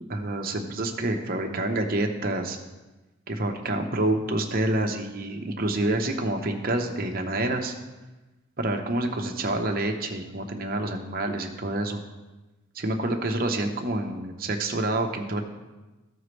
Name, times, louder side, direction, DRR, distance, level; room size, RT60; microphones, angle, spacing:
voice 1, 0.1-2.6 3.3-7.7 8.6-12.0 12.7-15.4, right 2 dB, 45° right, 3 dB, 0.9 m, -27 dB
15.0 x 5.1 x 3.2 m, 1.1 s
head